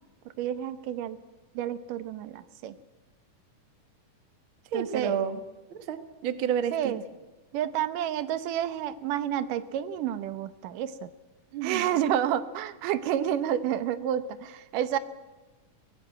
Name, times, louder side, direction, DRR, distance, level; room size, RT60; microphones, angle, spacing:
voice 1, 0.4-1.2 1.6-2.7 4.7-5.2 6.7-7.0 7.5-11.1 11.6-15.0, right 10 dB, 80° right, 13 dB, 2.5 m, -29 dB
voice 2, 4.7-5.4 5.7-6.9 11.5-11.9, right 8 dB, 55° right, 11 dB, 1.6 m, -30 dB
22.0 x 17.5 x 8.9 m, 1.2 s
omnidirectional pair, 3.7 m